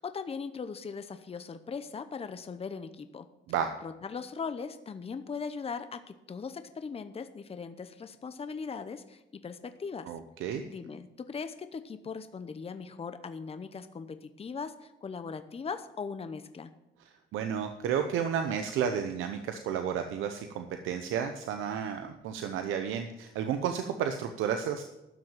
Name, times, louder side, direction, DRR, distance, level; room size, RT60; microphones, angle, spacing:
voice 1, 0.0-3.3 3.8-10.1 10.7-16.7, left 5 dB, 30° left, 10 dB, 0.8 m, -39 dB
voice 2, 10.1-10.6 17.3-24.8, right 8 dB, 90° right, 7 dB, 0.9 m, -32 dB
12.0 x 6.4 x 9.0 m, 0.95 s
cardioid pair, 90°, 20 cm